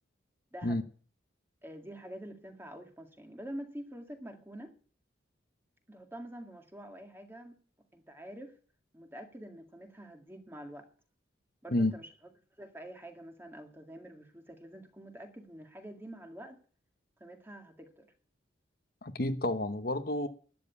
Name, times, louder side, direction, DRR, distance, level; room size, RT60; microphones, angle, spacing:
voice 1, 0.5-0.8 1.6-4.7 5.9-7.6 7.9-8.6 8.9-10.9 11.6-12.1 12.6-16.6 17.2-18.1, right 1 dB, 10° right, 1.9 m, -46 dB
voice 2, 19.0-20.3, left 1 dB, 50° left, 1.0 m, -30 dB
12.0 x 9.3 x 8.3 m
head